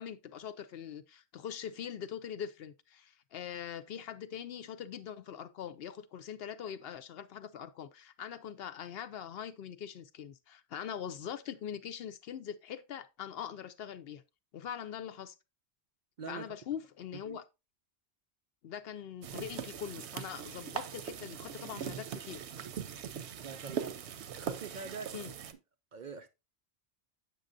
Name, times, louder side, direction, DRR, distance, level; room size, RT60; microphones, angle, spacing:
voice 1, 0.0-14.2 14.5-15.3 16.3-17.4 18.6-22.4 25.1-25.3, left 9 dB, 70° left, 0.8 m, -42 dB
voice 2, 16.2-16.6 17.2-17.4 23.4-24.0 24.3-25.1 25.9-26.3, right 5 dB, 55° right, 0.6 m, -44 dB
sound 1, 19.2-25.5, right 8 dB, 90° right, 1.0 m, -41 dB
7.6 x 6.3 x 2.5 m
omnidirectional pair, 1.1 m